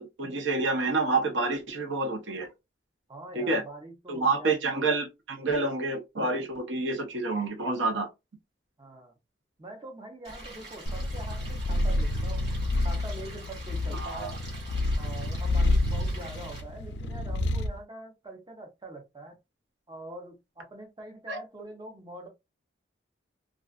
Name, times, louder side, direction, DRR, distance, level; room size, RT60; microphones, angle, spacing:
voice 1, 0.0-2.5 3.4-3.6 4.1-8.1 13.9-14.3 21.3-21.4, right 3 dB, 80° right, 0.7 m, -28 dB
voice 2, 3.1-4.6 8.8-9.1 9.6-12.5 12.8-14.4 15.0-19.4 19.9-22.3, right 1 dB, 20° right, 0.6 m, -44 dB
Stream, 10.2-16.6, right 2 dB, 55° right, 1.2 m, -46 dB
Purr, 10.9-17.8, left 2 dB, 65° left, 0.3 m, -29 dB
2.4 x 2.4 x 2.3 m
head